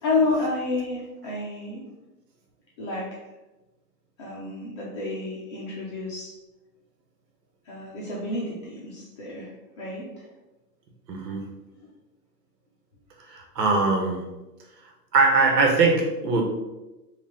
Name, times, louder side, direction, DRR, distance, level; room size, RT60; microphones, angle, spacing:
voice 1, 0.0-1.8 2.8-3.2 4.2-6.4 7.7-10.3, left 3 dB, 20° left, -6 dB, 0.5 m, -30 dB
voice 2, 11.1-11.4 13.3-14.2 15.1-16.4, right 3 dB, 90° right, 1 dB, 1.2 m, -21 dB
4.8 x 2.5 x 3.6 m, 1.1 s
supercardioid pair, 165°, 48 cm